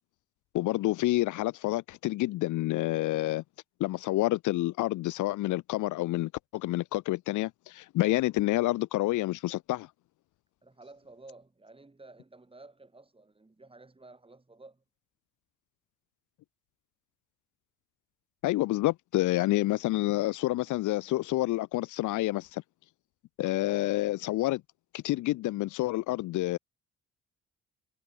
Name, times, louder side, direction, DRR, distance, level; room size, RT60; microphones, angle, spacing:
voice 1, 0.5-3.4 3.8-9.9 18.4-22.6 23.4-24.6 24.9-26.6, left 17 dB, 80° left, 0.6 m, -28 dB
voice 2, 10.6-14.8, right 2 dB, 20° right, 7.8 m, -53 dB
cardioid pair, 90°, 30 cm